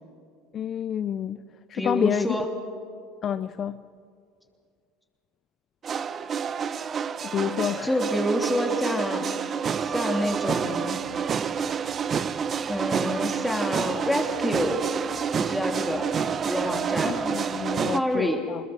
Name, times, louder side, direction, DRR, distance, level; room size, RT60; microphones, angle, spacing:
voice 1, 0.5-1.4 1.7-2.4 3.2-3.8 7.3-8.0 17.0-18.6, left 9 dB, 40° left, 14 dB, 0.5 m, -29 dB
voice 2, 1.7-2.5 7.8-9.3 9.8-11.0 12.7-14.8 15.3-16.0 16.4-17.1 17.9-18.4, equal, 5° left, 2 dB, 3.0 m, -27 dB
sound 1, 5.8-18.0, right 7 dB, 35° right, 0.8 m, -28 dB
25.5 x 21.0 x 6.4 m, 2.3 s
supercardioid pair, 95°, 0 cm